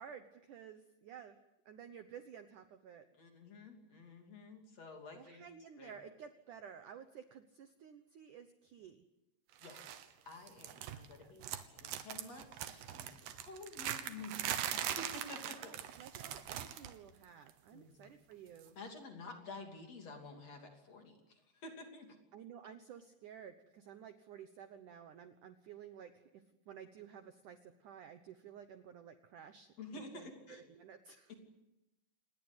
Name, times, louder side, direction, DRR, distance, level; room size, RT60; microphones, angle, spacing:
voice 1, 0.0-1.4 1.6-3.0 5.1-9.0 11.2-11.3 15.4-18.8 22.3-31.3, right 8 dB, 85° right, 8 dB, 1.7 m, -53 dB
voice 2, 3.2-5.5 5.8-6.1 9.6-10.0 10.2-11.5 11.7-14.4 14.7-15.7 17.7-18.0 18.7-22.2 29.8-30.6 31.3-31.4, left 3 dB, 40° left, 3 dB, 3.5 m, -51 dB
sound 1, 9.6-10.1 10.3-11.1 11.4-17.0 17.2-17.5 18.6-18.7, right 11 dB, 70° right, 3.2 m, -41 dB
27.0 x 20.0 x 8.2 m, 0.93 s
omnidirectional pair, 5.3 m